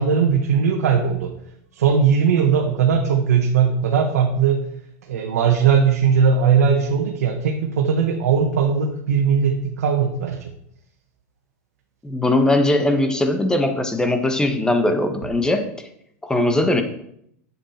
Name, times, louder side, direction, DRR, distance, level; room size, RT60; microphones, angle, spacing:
voice 1, 0.0-1.3 1.7-4.6 5.1-10.5, right 6 dB, 90° right, 2 dB, 1.2 m, -19 dB
voice 2, 12.0-15.9 16.2-16.8, left 1 dB, 10° left, 7 dB, 1.2 m, -20 dB
8.9 x 7.5 x 4.4 m, 0.71 s
supercardioid pair, 130°, 8 cm